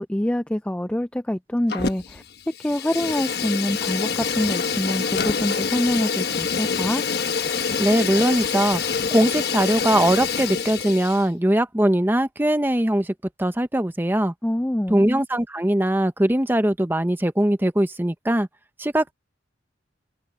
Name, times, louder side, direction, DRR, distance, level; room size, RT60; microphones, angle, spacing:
voice 1, 0.0-2.2 2.6-7.0 14.4-15.0, left 1 dB, 5° left, 0.3 m, -25 dB
Fire, 1.7-2.2 2.5-11.3, left 6 dB, 55° left, 1.3 m, -26 dB
voice 2, 7.8-8.8 9.1-13.1 13.4-14.3 14.9-18.5 18.8-19.1, right 1 dB, 10° right, 0.9 m, -21 dB
head